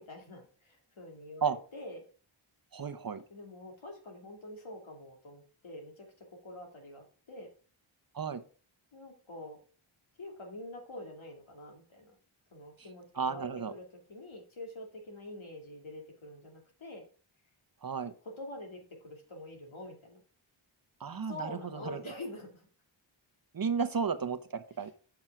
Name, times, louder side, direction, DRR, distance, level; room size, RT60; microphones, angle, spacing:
voice 1, 0.0-2.0 3.3-7.5 8.9-9.6 10.2-12.2 12.5-17.1 18.2-20.2 21.3-22.7 24.8-24.9, left 1 dB, 70° left, 1 dB, 2.8 m, -46 dB
voice 2, 2.7-3.2 8.1-8.4 13.2-13.7 17.8-18.1 21.0-22.0 23.5-24.9, right 6 dB, 45° right, 10 dB, 0.9 m, -33 dB
7.6 x 6.0 x 4.8 m, 0.39 s
wide cardioid pair, 80°, 49 cm